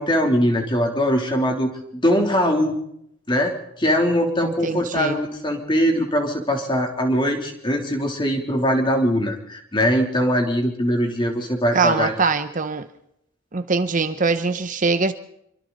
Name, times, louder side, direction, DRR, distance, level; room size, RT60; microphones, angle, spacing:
voice 1, 0.0-2.8 3.3-12.1, equal, 25° left, 3.2 m, -21 dB
voice 2, 4.4-5.2 11.7-12.9 13.5-15.1, right 4 dB, 40° right, 0.8 m, -22 dB
26.5 x 24.0 x 4.1 m
head